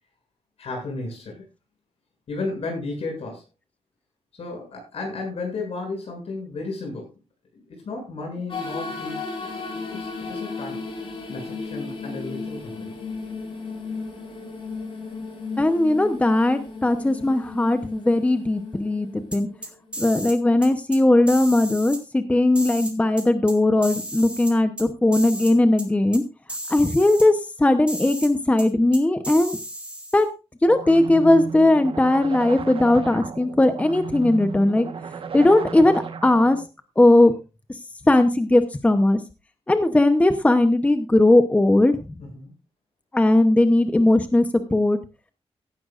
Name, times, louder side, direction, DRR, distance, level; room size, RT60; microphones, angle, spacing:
voice 1, 0.6-1.4 2.3-3.4 4.3-7.1 7.7-9.3 9.9-10.8 11.3-12.9 42.2-42.5, left 3 dB, 70° left, 1 dB, 7.4 m, -33 dB
sound 1, 8.5-20.3, left 4 dB, 55° left, 5.3 m, -35 dB
voice 2, 15.6-19.5 20.0-26.2 26.7-29.6 30.1-30.3 30.6-34.9 35.3-36.6 37.0-37.3 38.0-39.2 39.7-42.0 43.1-45.0, left 1 dB, 15° left, 9 dB, 0.8 m, -18 dB
sound 2, 19.3-20.4 20.6-21.0 21.3-22.0 22.5-23.5 23.8-24.8 25.1-25.5 25.8-25.9 26.1-26.2 26.5-27.3 27.9-28.3 28.6-28.7 28.9-30.2, right 1 dB, 10° right, 2.3 m, -34 dB
sound 3, 30.7-36.7, right 5 dB, 60° right, 1.3 m, -34 dB
16.5 x 11.5 x 2.5 m, 0.29 s
wide cardioid pair, 135°, 11 cm